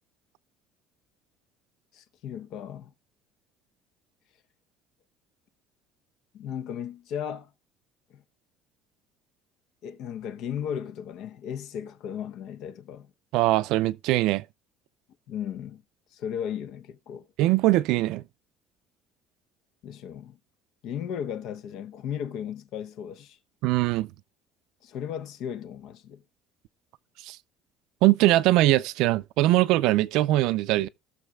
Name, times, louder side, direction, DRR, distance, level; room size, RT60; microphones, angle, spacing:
voice 1, 1.9-2.9 6.3-7.5 8.1-8.2 9.8-13.1 15.3-15.8 16.1-17.3 19.8-20.4 20.8-23.4 24.8-26.2, left 8 dB, 60° left, 0.8 m, -35 dB
voice 2, 13.3-14.4 17.4-18.2 23.6-24.1 27.2-27.4 28.0-30.9, right 16 dB, 70° right, 0.5 m, -22 dB
18.5 x 6.5 x 2.3 m
cardioid pair, 140°, 0 cm